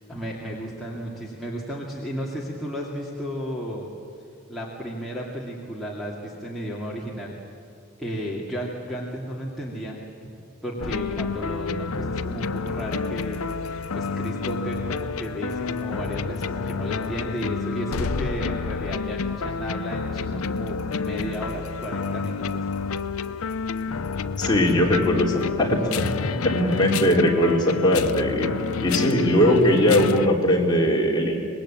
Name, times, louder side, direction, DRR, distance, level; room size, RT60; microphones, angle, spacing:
voice 1, 0.1-3.9 4.5-7.4 8.0-10.0 10.6-22.6 23.8-24.0, equal, ahead, -5 dB, 2.4 m, -33 dB
sound 1, 10.8-30.3, left 4 dB, 75° left, 0.7 m, -29 dB
voice 2, 24.4-26.1 26.4-28.5 28.8-31.4, equal, 20° left, -2 dB, 3.5 m, -20 dB
25.5 x 20.0 x 8.8 m, 2.5 s
head